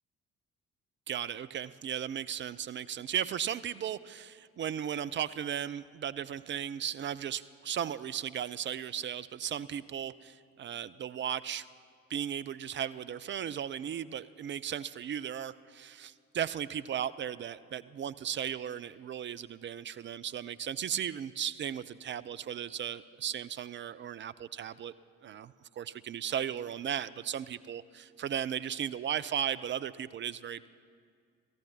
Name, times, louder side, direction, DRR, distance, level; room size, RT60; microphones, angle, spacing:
voice 1, 1.1-11.7 12.1-24.9 25.2-30.7, right 9 dB, 30° right, 16 dB, 0.4 m, -36 dB
28.5 x 14.5 x 2.8 m, 2.1 s
figure-of-eight pair, 45°, 41 cm